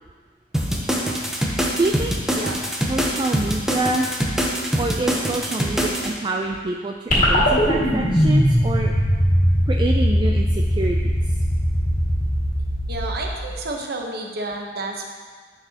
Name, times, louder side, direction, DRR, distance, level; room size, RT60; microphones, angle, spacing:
sound 1, 0.5-6.1, equal, 5° right, 0.8 m, -24 dB
voice 1, 1.8-2.1 2.8-4.1 4.8-8.9 9.7-11.1, right 2 dB, 25° right, 2 dB, 0.4 m, -26 dB
sound 2, 7.1-13.6, equal, 45° left, 1.9 m, -20 dB
voice 2, 12.9-15.1, right 2 dB, 60° right, 1 dB, 0.9 m, -30 dB
9.8 x 6.0 x 2.9 m, 1.5 s
head